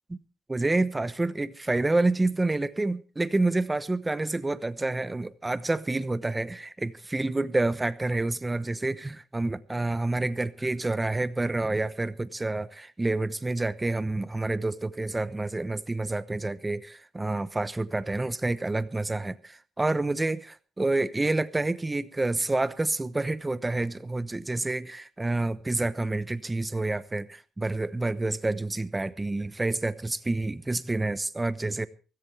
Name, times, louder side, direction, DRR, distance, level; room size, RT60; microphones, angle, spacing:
voice 1, 0.5-31.9, right 2 dB, 15° right, 0.9 m, -28 dB
23.5 x 13.5 x 3.4 m
cardioid pair, 90°, 0 cm